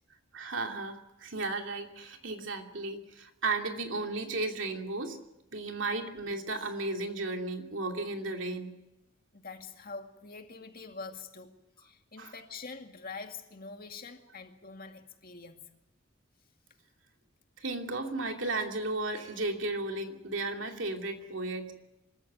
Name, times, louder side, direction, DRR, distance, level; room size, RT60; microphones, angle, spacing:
voice 1, 0.3-5.2 5.5-8.7 12.2-12.3 17.6-21.7, right 2 dB, 70° right, 2.8 m, -34 dB
voice 2, 9.3-15.7, left 4 dB, 50° left, 2.2 m, -45 dB
25.5 x 14.5 x 9.4 m
head